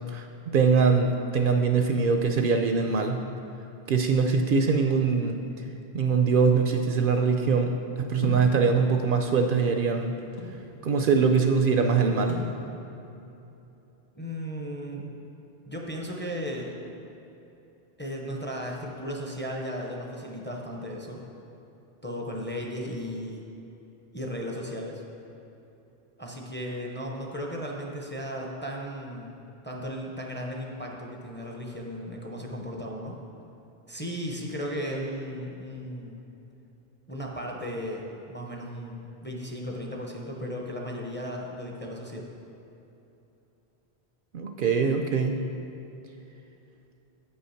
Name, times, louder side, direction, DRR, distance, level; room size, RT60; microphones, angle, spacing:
voice 1, 0.5-3.3 3.9-5.4 5.9-7.7 8.0-10.2 10.8-12.4 44.3-45.4, right 5 dB, 65° right, 5 dB, 0.7 m, -23 dB
sound 1, 8.2-8.6 9.4-10.6 12.3-12.6, left 3 dB, 75° left, 1.4 m, -35 dB
voice 2, 14.1-15.1 15.7-16.7 18.0-21.2 22.0-23.4 24.1-25.0 26.2-33.2 33.9-36.2 37.1-42.3, equal, 10° left, -1 dB, 0.7 m, -35 dB
8.5 x 5.5 x 5.7 m, 2.9 s
omnidirectional pair, 1.0 m